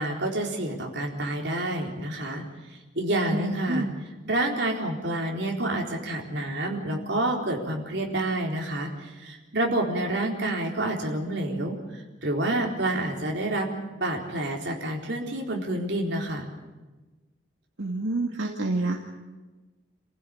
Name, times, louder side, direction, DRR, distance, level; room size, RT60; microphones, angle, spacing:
voice 1, 0.0-2.4 2.7-3.9 4.2-13.7 14.0-16.5, right 1 dB, 60° right, 0 dB, 4.2 m, -28 dB
voice 2, 3.3-3.9 17.8-19.0, right 2 dB, 85° right, 1 dB, 2.2 m, -28 dB
28.0 x 15.5 x 8.8 m, 1.2 s
head